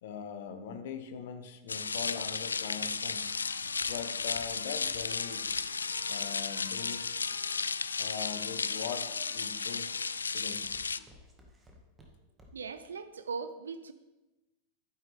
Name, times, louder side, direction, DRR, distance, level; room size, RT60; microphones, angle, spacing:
voice 1, 0.0-3.4 3.8-5.5 6.1-7.2 8.0-10.7 11.0-11.1, left 7 dB, 55° left, 9 dB, 1.0 m, -42 dB
sound 1, 1.7-11.0, left 5 dB, 75° left, 0.3 m, -34 dB
Trumpet, 3.1-10.5, left 2 dB, 15° left, 1.3 m, -58 dB
Walk footsteps, 3.7-7.7 8.3-8.7 9.2-9.6 9.9-12.8 13.1-13.2, left 1 dB, 15° right, 2.0 m, -58 dB
voice 2, 12.5-13.9, right 5 dB, 70° right, 12 dB, 0.6 m, -39 dB
12.0 x 10.5 x 3.6 m, 1.1 s
figure-of-eight pair, 90°, 0 cm